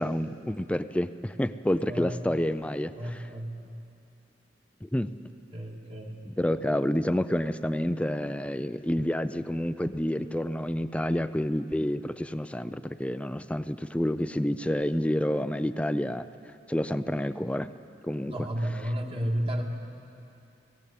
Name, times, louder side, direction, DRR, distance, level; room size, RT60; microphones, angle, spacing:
voice 1, 0.0-3.3 4.8-5.2 6.3-16.3 16.7-17.7 18.0-18.9, left 1 dB, 5° left, 12 dB, 0.4 m, -29 dB
voice 2, 1.9-2.2 3.0-3.5 5.5-6.2 18.3-19.6, equal, 30° right, 1 dB, 1.9 m, -32 dB
18.5 x 17.0 x 8.4 m, 2.7 s
head